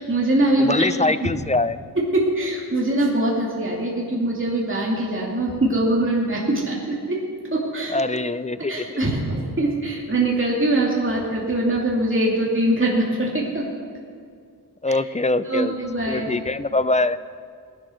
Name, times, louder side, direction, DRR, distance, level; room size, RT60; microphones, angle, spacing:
voice 1, 0.0-1.3 2.0-7.2 7.5-8.0 8.7-13.7 14.9-15.0 15.4-16.3, right 1 dB, 30° right, -3 dB, 2.5 m, -23 dB
voice 2, 0.6-1.8 7.9-9.0 14.8-15.7 16.1-17.2, left 2 dB, 20° left, 14 dB, 0.4 m, -23 dB
19.0 x 11.0 x 6.3 m, 2.2 s
wide cardioid pair, 100°, 40 cm